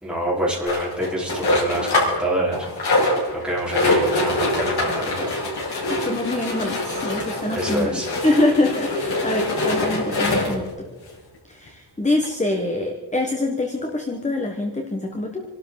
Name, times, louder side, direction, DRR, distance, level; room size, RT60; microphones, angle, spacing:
voice 1, 0.0-2.7 3.3-5.3 7.5-8.1, right 1 dB, ahead, -6 dB, 4.8 m, -26 dB
sound 1, 0.6-2.2 2.5-10.7 11.3-11.4 11.7-11.8 12.2-12.3, left 1 dB, 70° left, 5.9 m, -24 dB
voice 2, 5.9-10.9 11.5-15.4, left 2 dB, 15° left, 2 dB, 1.5 m, -24 dB
28.0 x 12.5 x 4.1 m, 1.3 s
wide cardioid pair, 155°, 40 cm